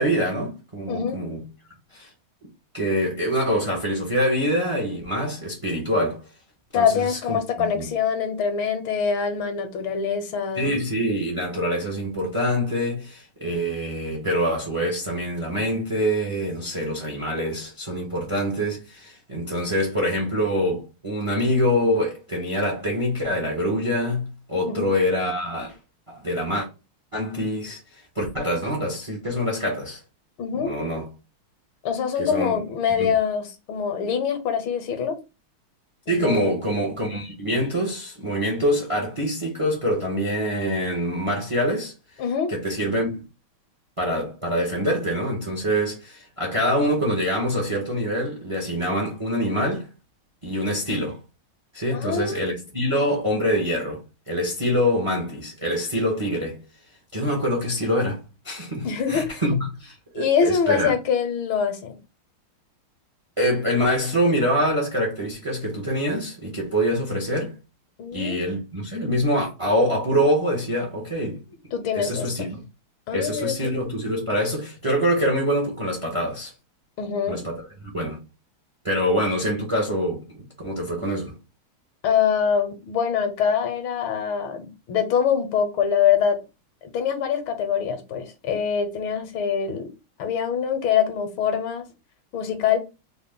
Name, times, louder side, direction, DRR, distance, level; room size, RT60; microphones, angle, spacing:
voice 1, 0.0-1.4 1.9-2.1 2.7-6.2 6.7-7.9 10.5-25.8 26.1-26.7 27.1-27.8 28.1-30.0 30.5-31.1 32.2-32.6 33.0-33.1 36.1-41.9 42.5-43.2 44.0-49.9 50.4-51.2 51.7-56.6 57.1-60.9 63.4-67.5 68.1-71.4 71.9-72.6 73.1-76.5 77.3-78.2 78.8-81.4, equal, 45° right, 0.4 m, -25 dB
voice 2, 0.9-1.2 6.7-10.7 24.6-24.9 30.4-30.7 31.8-35.2 36.1-36.5 42.2-42.5 51.9-52.4 58.8-59.4 60.1-62.0 68.0-68.4 71.7-72.5 73.1-73.7 77.0-77.4 82.0-86.4 86.9-89.9 90.2-91.8 92.3-92.8, left 7 dB, 75° left, 1.5 m, -24 dB
3.9 x 2.1 x 3.6 m
omnidirectional pair, 2.3 m